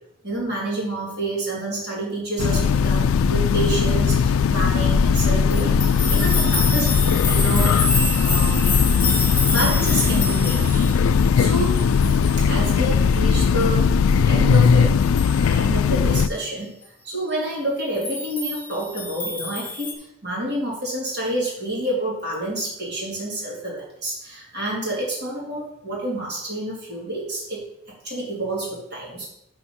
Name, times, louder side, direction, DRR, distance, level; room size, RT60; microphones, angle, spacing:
voice 1, 0.2-5.7 6.1-6.9 7.3-8.8 9.5-11.0 11.4-11.8 12.5-14.9 15.3-27.6 28.0-29.2, right 1 dB, 50° right, -4 dB, 3.3 m, -28 dB
Train, 2.4-16.3, left 6 dB, 80° left, 0.3 m, -19 dB
sound 1, 5.5-12.8 13.1-13.2 13.6-13.7 14.1-14.2 14.5-14.6 15.0-15.5 17.9-19.9, left 2 dB, 10° left, 1.7 m, -28 dB
6.4 x 5.6 x 5.6 m, 0.81 s
head